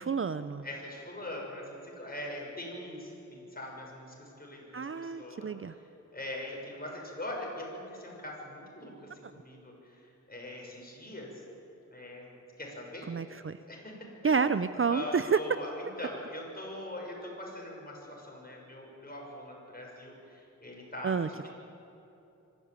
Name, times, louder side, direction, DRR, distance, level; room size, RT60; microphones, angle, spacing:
voice 1, 0.0-0.6 4.7-5.7 13.1-13.6 14.2-15.4 21.0-21.5, right 5 dB, 45° right, 12 dB, 0.6 m, -29 dB
voice 2, 0.6-5.8 6.1-11.3 11.9-13.1 13.7-14.4 14.9-21.3, left 1 dB, 30° left, -1 dB, 6.5 m, -42 dB
24.5 x 13.5 x 9.0 m, 2.9 s
wide cardioid pair, 75°, 31 cm